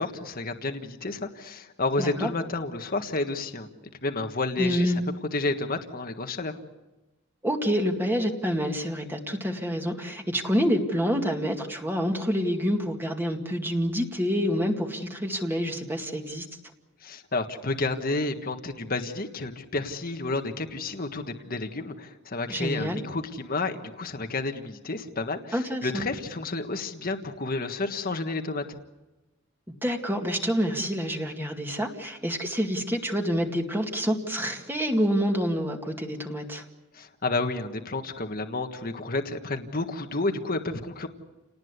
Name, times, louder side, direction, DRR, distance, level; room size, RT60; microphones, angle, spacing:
voice 1, 0.0-3.7 4.0-4.9 5.3-6.5 17.0-28.8 36.9-41.1, left 3 dB, 45° left, 6 dB, 1.6 m, -30 dB
voice 2, 2.0-2.3 4.6-5.0 7.4-16.5 22.5-23.0 25.5-26.1 29.8-36.6, equal, 10° right, 2 dB, 2.2 m, -27 dB
29.5 x 19.0 x 8.3 m, 1.1 s
head